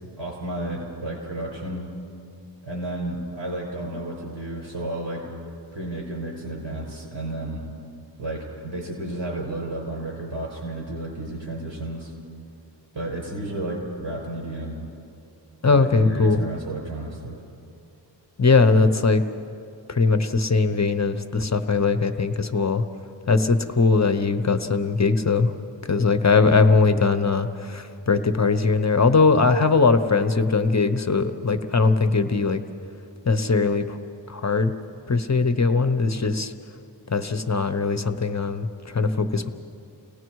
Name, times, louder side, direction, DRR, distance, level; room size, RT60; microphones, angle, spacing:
voice 1, 0.2-1.9 2.6-5.3 5.7-7.6 8.2-12.1 12.9-14.9 15.7-17.4, right 1 dB, 70° right, -1 dB, 6.1 m, -32 dB
voice 2, 15.6-16.4 18.4-19.2 19.9-22.8 23.3-25.5 25.8-32.6 33.2-34.0 34.3-34.7 35.1-36.5 37.1-39.5, left 4 dB, 40° left, 9 dB, 0.9 m, -20 dB
29.5 x 18.5 x 4.7 m, 2.6 s
wide cardioid pair, 75°, 44 cm